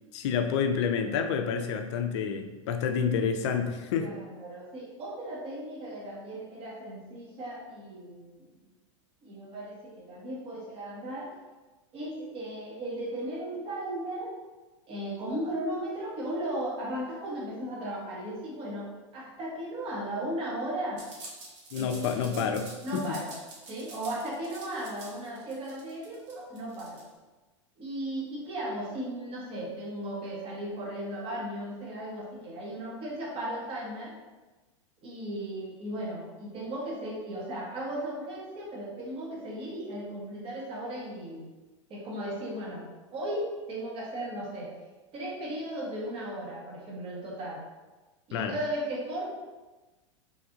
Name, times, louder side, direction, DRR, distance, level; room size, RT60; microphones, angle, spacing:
voice 1, 0.1-4.1 21.7-23.2 48.3-48.5, left 6 dB, 60° left, 6 dB, 0.4 m, -29 dB
voice 2, 3.9-8.4 9.2-11.3 11.9-14.3 14.9-21.0 21.7-22.4 22.8-23.3 23.7-27.0 27.8-34.2 35.0-41.5 41.9-44.7 45.1-47.6 48.3-49.3, right 1 dB, 35° right, -4 dB, 1.0 m, -36 dB
sound 1, 21.0-27.1, right 2 dB, 65° right, 0.9 m, -47 dB
3.1 x 2.6 x 2.4 m, 1.2 s
hypercardioid pair, 100°, 16 cm